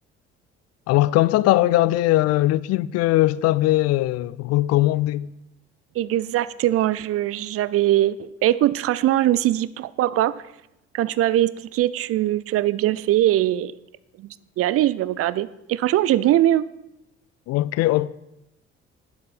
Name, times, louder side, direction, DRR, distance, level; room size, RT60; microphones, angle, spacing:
voice 1, 0.9-5.3 17.5-18.1, left 16 dB, 50° left, 0.4 m, -20 dB
voice 2, 6.0-10.4 10.9-13.7 14.2-14.3 14.6-16.7, right 13 dB, 45° right, 0.5 m, -21 dB
9.9 x 7.5 x 5.9 m
figure-of-eight pair, 50°, 34 cm